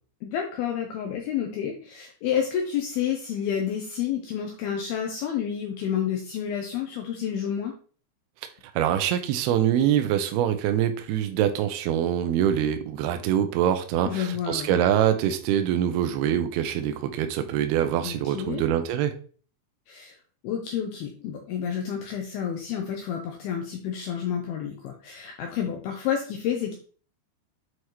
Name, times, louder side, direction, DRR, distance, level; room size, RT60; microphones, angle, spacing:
voice 1, 0.2-7.8 14.0-14.7 18.0-18.6 19.9-20.2 20.4-26.7, left 8 dB, 80° left, 2 dB, 2.3 m, -30 dB
voice 2, 8.7-19.1, right 10 dB, 90° right, 7 dB, 2.3 m, -24 dB
7.9 x 4.8 x 3.0 m, 0.42 s
omnidirectional pair, 5.3 m